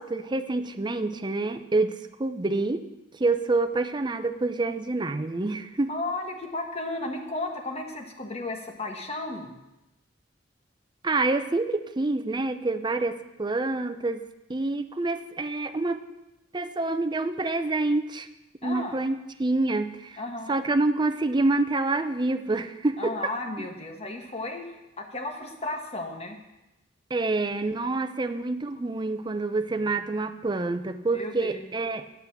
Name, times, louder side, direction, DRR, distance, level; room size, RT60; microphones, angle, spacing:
voice 1, 0.0-2.8 3.1-5.9 11.0-14.2 14.5-16.0 16.5-18.3 18.6-20.2 20.5-23.1 27.1-32.0, right 2 dB, 25° right, 10 dB, 0.6 m, -27 dB
voice 2, 5.9-9.5 18.6-19.0 20.2-20.6 23.0-24.7 25.0-26.4 31.1-31.6, left 2 dB, 35° left, 4 dB, 1.4 m, -34 dB
8.3 x 8.2 x 7.1 m, 0.96 s
head